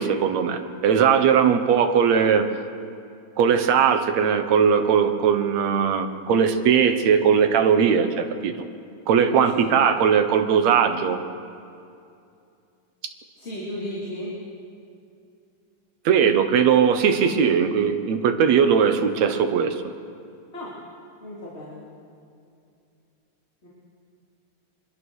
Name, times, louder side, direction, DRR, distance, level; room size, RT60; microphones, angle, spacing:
voice 1, 0.0-2.5 3.4-8.5 9.1-11.2 16.1-19.8, right 7 dB, 65° right, 8 dB, 2.3 m, -19 dB
voice 2, 13.4-14.3 20.5-20.7 21.2-21.8 23.6-23.7, equal, 20° left, -7 dB, 3.5 m, -34 dB
24.0 x 22.0 x 6.5 m, 2.5 s
omnidirectional pair, 3.6 m